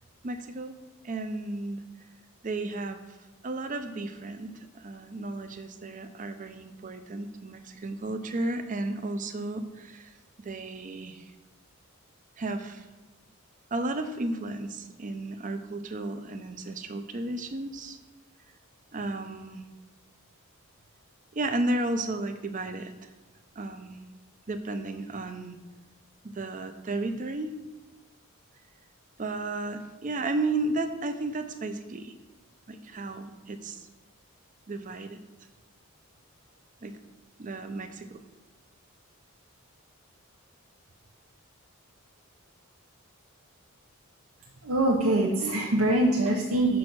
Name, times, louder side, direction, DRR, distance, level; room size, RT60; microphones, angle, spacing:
voice 1, 0.2-0.8 1.0-1.8 2.4-3.2 3.4-10.1 10.4-11.3 12.4-12.9 13.7-18.0 18.9-19.6 21.3-23.1 23.6-24.0 24.5-25.6 26.2-27.5 29.2-32.1 32.7-33.8 34.7-35.2 36.8-37.0 37.4-38.2, right 2 dB, 35° right, 9 dB, 0.6 m, -33 dB
voice 2, 44.6-46.8, right 1 dB, 75° right, -1 dB, 0.8 m, -24 dB
6.2 x 5.3 x 6.0 m, 1.1 s
head